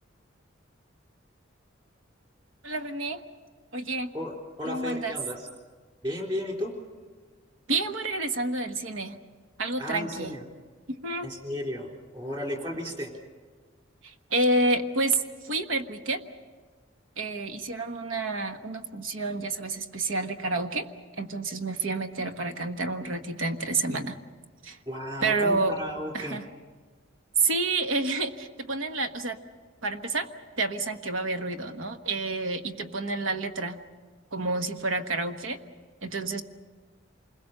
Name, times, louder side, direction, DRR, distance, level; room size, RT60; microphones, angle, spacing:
voice 1, 2.6-3.2 3.7-4.1 4.6-5.1 7.7-9.2 9.6-10.3 10.9-11.3 14.0-16.2 17.2-20.9 21.2-24.2 24.6-24.8 25.2-25.8 26.1-26.5 27.4-29.4 29.8-30.3 30.6-33.8 34.3-35.6 36.0-36.4, right 3 dB, 80° right, 7 dB, 1.3 m, -29 dB
voice 2, 4.1-5.5 6.0-6.8 9.8-10.4 11.2-11.9 12.1-13.1 24.9-26.4, left 1 dB, 25° right, 1 dB, 3.8 m, -34 dB
28.0 x 21.5 x 6.7 m, 1.5 s
head